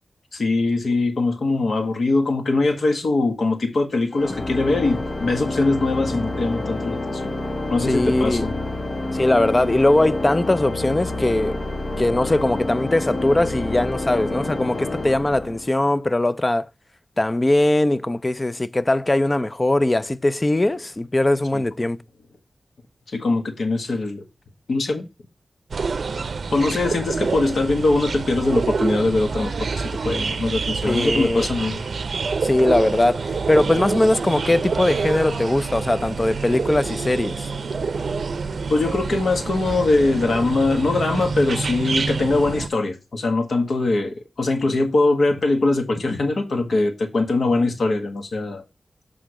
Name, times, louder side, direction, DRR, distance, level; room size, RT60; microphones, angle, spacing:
voice 1, 0.3-7.3 7.7-8.5 21.5-21.6 23.1-24.2 24.7-25.1 26.5-31.8 38.7-48.6, left 2 dB, 80° left, 1.4 m, -22 dB
Organ, 4.1-15.9, left 2 dB, 45° left, 1.0 m, -28 dB
voice 2, 7.9-8.5 9.1-11.6 12.0-16.7 17.2-22.0 30.9-31.5 32.4-37.5, left 1 dB, 25° left, 0.4 m, -20 dB
sound 1, 25.7-42.7, right 4 dB, 75° right, 0.5 m, -27 dB
8.1 x 3.7 x 4.8 m
wide cardioid pair, 85°, 0 cm